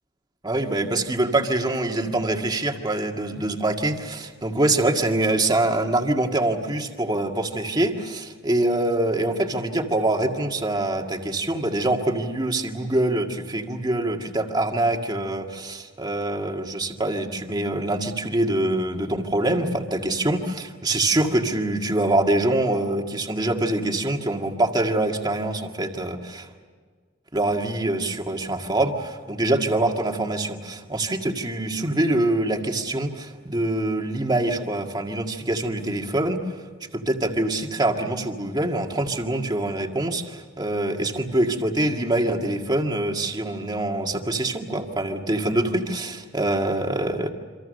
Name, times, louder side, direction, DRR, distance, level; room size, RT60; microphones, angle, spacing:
voice 1, 0.4-26.5 27.3-36.6 36.9-47.3, right 1 dB, 20° right, 3 dB, 2.0 m, -24 dB
27.5 x 25.5 x 6.6 m, 1.6 s
head